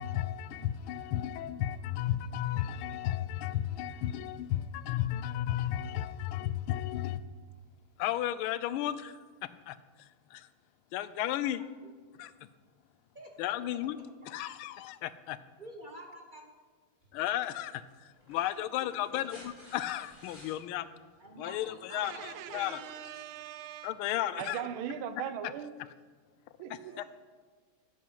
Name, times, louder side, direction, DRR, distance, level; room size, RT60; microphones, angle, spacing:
voice 1, 0.0-7.3 8.0-9.2 9.7-10.5 10.9-11.6 12.2-12.5 13.4-14.0 14.3-15.4 17.1-20.9 21.4-23.1 23.8-24.6 25.2-25.5 25.8-25.9 26.7-27.0, left 12 dB, 90° left, 1.4 m, -34 dB
voice 2, 15.6-16.5 18.8-18.9 21.2-22.6 24.2-24.8 26.9-27.0, right 1 dB, 45° right, 0.6 m, -49 dB
sound 1, 17.0-17.1 18.1-20.6 22.1-22.2, left 1 dB, 35° left, 4.0 m, -53 dB
voice 3, 22.0-23.9 24.4-25.7 26.6-26.9, right 9 dB, 85° right, 1.5 m, -40 dB
11.0 x 8.6 x 5.7 m
omnidirectional pair, 2.2 m